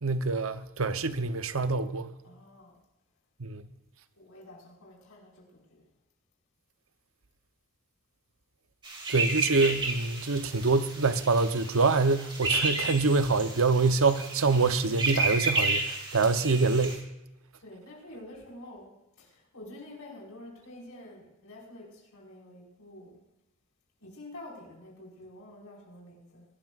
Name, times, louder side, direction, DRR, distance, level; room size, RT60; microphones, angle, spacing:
voice 1, 0.0-2.1 3.4-3.6 9.1-15.8 16.1-17.0, right 3 dB, 70° right, 0.9 m, -25 dB
voice 2, 2.2-2.8 4.2-5.8 17.6-23.2 24.0-26.5, left 1 dB, 80° left, 5.2 m, -48 dB
sound 1, 8.8-16.9, right 3 dB, 20° right, 2.6 m, -32 dB
23.0 x 13.5 x 2.5 m
head